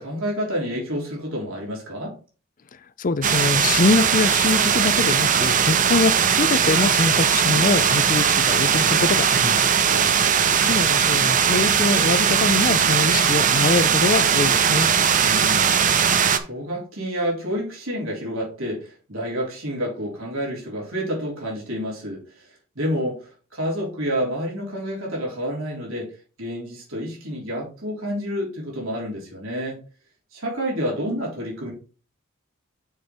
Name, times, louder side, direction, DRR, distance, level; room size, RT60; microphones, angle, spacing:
voice 1, 0.0-2.2 9.8-10.4 15.2-15.8 16.4-22.5 22.8-26.1 26.4-29.8 30.3-31.7, equal, 65° right, 3.5 m, -29 dB
voice 2, 3.0-9.7 10.5-14.9, left 3 dB, 40° left, 0.5 m, -23 dB
sound 1, 3.2-16.4, right 7 dB, 35° right, 0.6 m, -19 dB
6.5 x 5.2 x 4.4 m
head